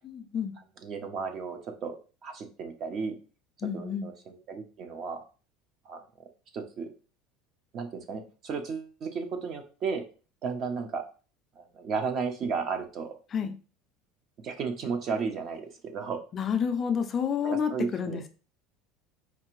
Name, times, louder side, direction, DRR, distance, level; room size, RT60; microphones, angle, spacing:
voice 1, 0.8-2.0 2.2-3.1 3.7-5.2 5.9-6.0 6.5-6.9 7.7-10.0 10.4-11.0 11.6-13.1 14.4-16.2 17.4-18.2, right 5 dB, 40° right, 6 dB, 0.7 m, -34 dB
voice 2, 3.6-4.1 13.3-13.6 16.3-18.3, left 7 dB, 30° left, 8 dB, 0.3 m, -29 dB
4.4 x 2.5 x 3.0 m, 0.36 s
cardioid pair, 150°, 0 cm